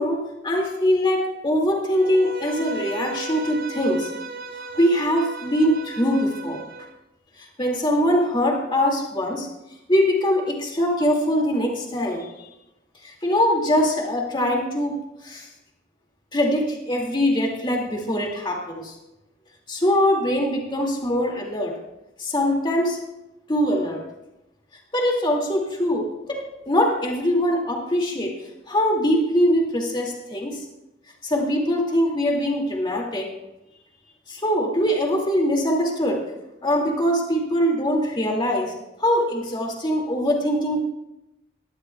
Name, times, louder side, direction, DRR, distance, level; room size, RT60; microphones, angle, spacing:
voice 1, 0.0-4.1 4.7-6.6 7.4-9.5 9.9-12.3 13.0-15.5 16.3-18.9 19.7-21.8 22.2-23.0 23.5-24.0 24.9-28.3 28.7-30.6 31.2-33.3 34.3-36.2 36.6-38.7 39.0-40.8, equal, 25° left, 0 dB, 2.3 m, -22 dB
Bowed string instrument, 1.9-6.9, right 3 dB, 50° right, 0.8 m, -36 dB
19.5 x 12.5 x 2.3 m, 0.94 s
head